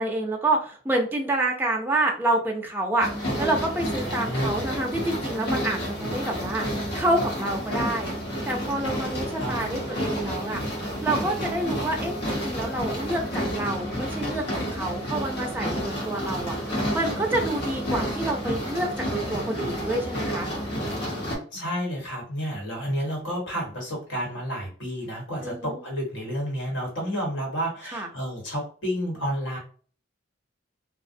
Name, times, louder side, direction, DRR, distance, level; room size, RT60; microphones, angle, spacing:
voice 1, 0.0-3.1 3.4-8.1 8.5-10.6 11.0-13.2 13.5-14.4 14.7-20.5 25.4-25.8 27.9-28.1, right 2 dB, 10° right, 1 dB, 0.3 m, -28 dB
sound 1, 3.0-21.4, equal, 60° left, 0.9 m, -30 dB
voice 2, 4.0-4.7 9.1-9.7 21.2-29.6, equal, 85° left, -2 dB, 1.2 m, -31 dB
2.4 x 2.0 x 2.5 m, 0.41 s
head